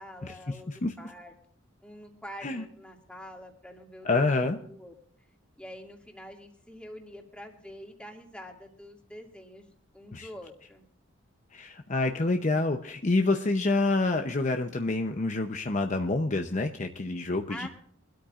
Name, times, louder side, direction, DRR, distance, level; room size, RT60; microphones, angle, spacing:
voice 1, 0.0-1.3 1.8-4.9 5.6-10.8 17.5-17.7, equal, 5° left, 1 dB, 2.3 m, -46 dB
voice 2, 4.0-4.6 10.1-10.3 11.5-17.7, left 2 dB, 40° left, 5 dB, 0.7 m, -27 dB
23.5 x 13.0 x 2.5 m, 0.63 s
head